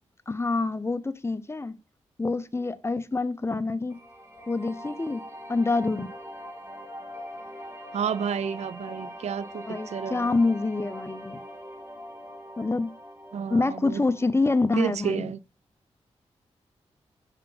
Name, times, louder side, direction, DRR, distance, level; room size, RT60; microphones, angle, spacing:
voice 1, 0.3-1.8 2.2-4.0 4.5-5.2 5.5-6.1 9.6-11.4 12.6-12.9 13.5-15.3, left 3 dB, 20° left, 0.7 m, -26 dB
sound 1, 3.9-15.0, equal, 20° right, 1.8 m, -42 dB
voice 2, 7.9-10.4 13.3-14.0 14.8-15.4, right 7 dB, 65° right, 0.4 m, -31 dB
5.6 x 3.6 x 5.2 m
cardioid pair, 50°, 12 cm